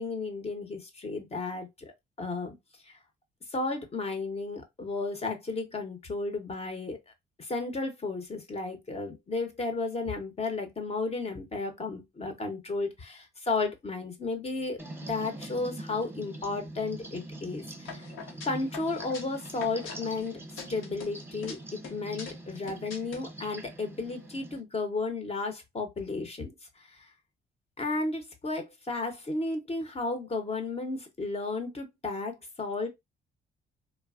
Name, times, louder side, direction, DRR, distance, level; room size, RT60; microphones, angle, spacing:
voice 1, 0.0-1.9 2.2-2.6 2.9-3.0 3.5-7.0 7.4-14.8 15.1-18.1 18.4-26.5 26.8-27.1 27.8-32.9, left 3 dB, 30° left, 0.7 m, -33 dB
sound 1, 14.8-24.6, right 1 dB, 10° right, 0.8 m, -44 dB
sound 2, 17.9-20.3 20.6-21.6 21.8-23.2, left 5 dB, 90° left, 0.9 m, -43 dB
3.1 x 2.1 x 2.3 m
cardioid pair, 90°, 20 cm